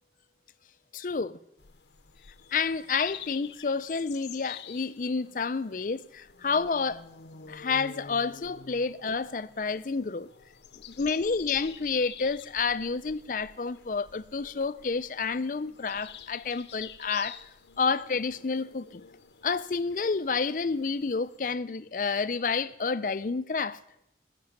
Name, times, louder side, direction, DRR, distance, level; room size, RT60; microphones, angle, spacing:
voice 1, 0.9-1.4 2.5-7.0 7.5-10.3 10.8-17.4 17.8-19.0 19.4-23.8, left 4 dB, 50° left, 0.5 m, -29 dB
sound 1, 1.6-21.4, left 8 dB, 75° left, 0.7 m, -49 dB
14.5 x 6.8 x 9.4 m
head